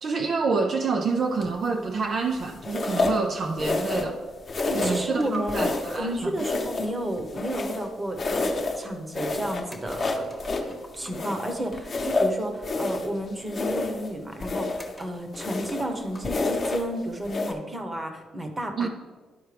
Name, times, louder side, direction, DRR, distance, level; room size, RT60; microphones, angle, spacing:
voice 1, 0.0-4.2 4.7-6.3 18.8-18.9, right 4 dB, 50° right, 4 dB, 0.5 m, -27 dB
sound 1, 1.4-1.7 2.6-3.2 3.6-4.2 4.5-5.1 5.5-6.0 6.4-7.9 8.2-8.8 9.1-10.7 11.1-13.1 13.5-14.1 14.4-14.9 15.3-15.9 16.2-16.9 17.2-17.5, left 3 dB, 40° left, 0.9 m, -28 dB
sound 2, 4.6-6.3 9.7-11.4 12.5-12.6 12.8-12.9 13.7-13.8 14.8-16.4, left 1 dB, 5° left, 1.0 m, -47 dB
voice 2, 4.7-5.6 6.0-10.3 10.6-18.9, right 1 dB, 20° right, 4 dB, 1.1 m, -32 dB
12.0 x 4.4 x 3.4 m, 1.4 s
cardioid pair, 90°, 0 cm